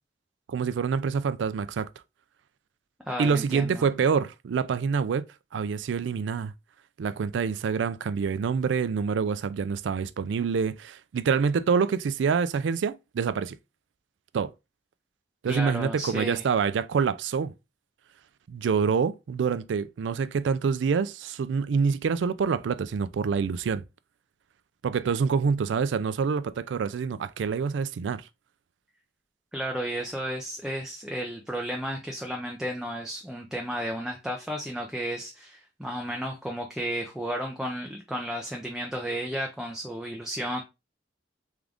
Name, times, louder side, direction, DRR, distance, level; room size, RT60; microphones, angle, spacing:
voice 1, 0.5-1.9 3.2-5.3 5.5-6.5 7.0-13.6 14.3-14.5 15.4-17.5 18.5-23.8 24.8-28.3, right 6 dB, 80° right, 0.4 m, -26 dB
voice 2, 3.1-3.8 15.5-16.4 29.5-40.6, equal, 5° right, 0.5 m, -33 dB
3.6 x 3.6 x 3.4 m
head